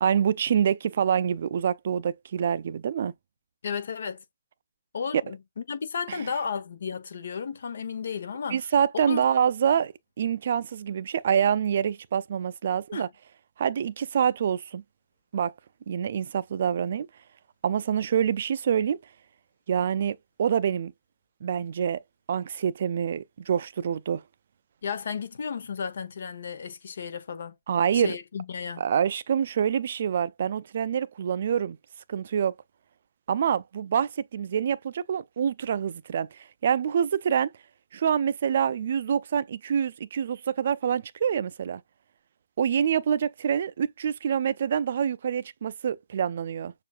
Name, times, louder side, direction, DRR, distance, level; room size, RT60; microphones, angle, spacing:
voice 1, 0.0-3.1 6.1-6.2 8.5-13.1 13.6-14.8 15.3-15.5 15.9-17.1 17.6-19.0 19.7-20.9 21.4-22.0 22.3-24.2 27.7-28.2 28.8-31.8 32.1-32.5 33.3-37.5 37.9-41.8 42.6-46.7, right 8 dB, 50° right, 0.4 m, -26 dB
voice 2, 3.6-4.2 4.9-8.6 8.9-9.3 12.9-13.1 24.8-27.5 27.9-28.8, left 6 dB, 60° left, 1.1 m, -33 dB
6.8 x 2.6 x 2.4 m
hypercardioid pair, 150°, 0 cm